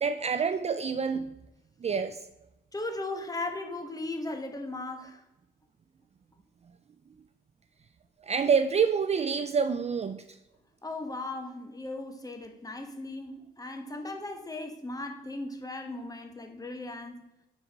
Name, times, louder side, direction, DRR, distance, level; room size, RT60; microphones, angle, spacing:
voice 1, 0.0-1.3 1.8-2.2 8.2-10.2, right 6 dB, 35° right, 0.4 m, -27 dB
voice 2, 2.7-5.2 10.8-17.3, left 2 dB, 20° left, 1.2 m, -37 dB
9.3 x 4.6 x 3.5 m
cardioid pair, 90°, 20 cm